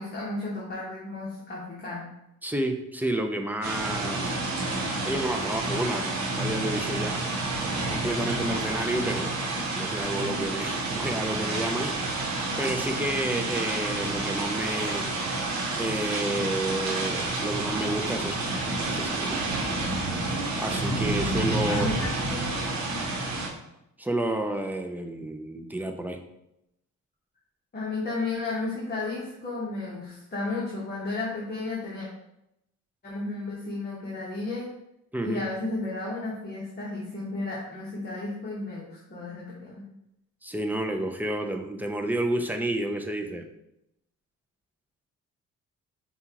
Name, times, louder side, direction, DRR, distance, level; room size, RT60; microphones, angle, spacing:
voice 1, 0.0-2.1 21.7-22.5 27.7-32.1 33.0-34.7 35.2-39.8, left 3 dB, 30° left, -5 dB, 1.1 m, -33 dB
voice 2, 2.4-4.4 5.0-6.1 6.4-7.2 7.9-9.4 9.8-11.9 12.6-15.1 15.8-18.4 18.9-19.4 20.6-21.9 24.0-26.2 35.1-35.4 40.4-43.4, right 1 dB, 5° right, 4 dB, 0.4 m, -30 dB
sound 1, 3.6-23.5, right 2 dB, 65° right, 0.9 m, -29 dB
5.4 x 2.4 x 2.9 m, 0.83 s
cardioid pair, 90°, 30 cm